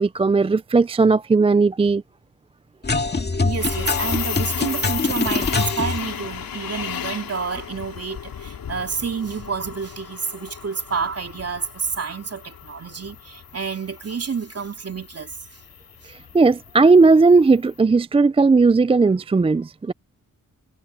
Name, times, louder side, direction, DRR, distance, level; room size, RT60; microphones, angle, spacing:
voice 1, 0.0-2.0 16.0-19.9, right 4 dB, 15° right, 0.4 m, -16 dB
sound 1, 2.8-6.0, left 3 dB, 30° left, 2.1 m, -24 dB
voice 2, 3.4-15.3, right 5 dB, 45° right, 3.0 m, -29 dB
sound 2, 3.6-17.6, left 8 dB, 85° left, 2.7 m, -35 dB
cardioid pair, 95°, 34 cm